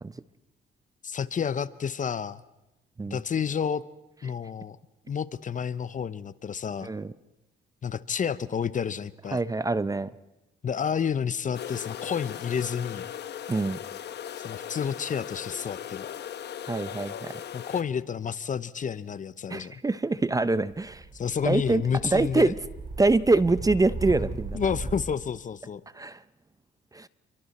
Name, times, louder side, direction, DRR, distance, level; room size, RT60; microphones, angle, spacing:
voice 1, 1.0-2.4 3.1-3.8 4.2-4.8 5.1-6.9 7.8-9.4 10.6-13.1 14.4-16.1 17.5-19.8 21.1-22.5 24.5-25.8, left 7 dB, 40° left, 16 dB, 0.7 m, -30 dB
voice 2, 6.8-7.1 9.3-10.1 13.5-13.8 16.7-17.4 19.5-21.0 21.4-21.8 22.1-22.5 23.0-24.6 25.9-26.2 26.9-27.1, right 3 dB, 15° right, 16 dB, 0.6 m, -25 dB
sound 1, 11.5-17.8, left 9 dB, 60° left, 1.0 m, -38 dB
sound 2, 20.7-25.0, right 3 dB, 40° right, 4.7 m, -37 dB
29.5 x 23.0 x 4.2 m, 0.96 s
cardioid pair, 90°, 20 cm